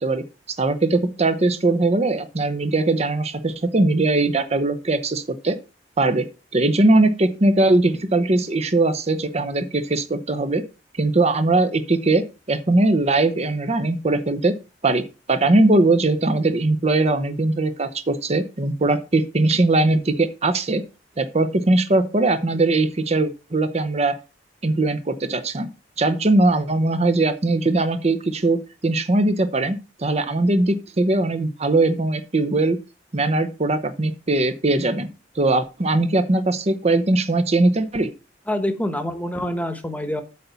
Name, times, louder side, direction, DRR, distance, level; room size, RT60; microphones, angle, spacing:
voice 1, 0.0-5.6 6.0-6.3 6.5-10.6 10.9-14.5 14.8-15.0 15.3-20.8 21.2-24.1 24.6-25.7 26.0-32.8 33.1-35.1 35.4-38.1, right 2 dB, 35° right, 10 dB, 0.8 m, -20 dB
voice 2, 38.5-40.2, left 1 dB, 10° left, 8 dB, 1.1 m, -26 dB
8.5 x 4.0 x 6.9 m, 0.31 s
head